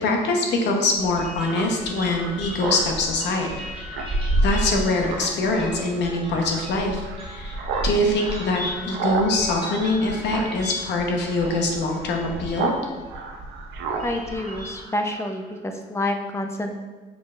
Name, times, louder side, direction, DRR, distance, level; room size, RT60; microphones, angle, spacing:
voice 1, 0.0-3.5 3.8-3.9 4.4-12.7, left 2 dB, 65° left, 2 dB, 0.9 m, -24 dB
sound 1, 0.9-14.8, right 1 dB, 30° right, 1.2 m, -32 dB
Speech synthesizer, 1.5-12.8 13.1-15.3, right 5 dB, 80° right, 0.6 m, -34 dB
voice 2, 14.0-16.8, left 1 dB, 15° left, 3 dB, 0.5 m, -28 dB
6.2 x 2.4 x 3.2 m, 1.3 s
cardioid pair, 120°, 19 cm